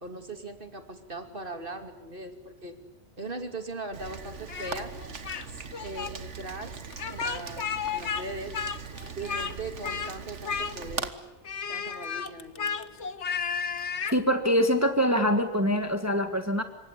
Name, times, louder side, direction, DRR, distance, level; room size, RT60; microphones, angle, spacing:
voice 1, 0.0-2.7 3.2-4.9 5.5-6.8 7.1-8.6 9.2-11.2 11.7-12.8, right 2 dB, 50° right, 7 dB, 3.0 m, -39 dB
Rain, 3.9-11.1, right 5 dB, 85° right, 1.9 m, -40 dB
Speech, 4.5-5.5 5.7-6.1 6.9-8.2 8.5-9.5 9.8-10.1 10.4-11.0 11.4-14.2, left 6 dB, 70° left, 1.5 m, -33 dB
voice 2, 14.1-16.6, equal, 15° right, 7 dB, 1.7 m, -24 dB
26.5 x 24.5 x 8.5 m, 1.0 s
omnidirectional pair, 1.2 m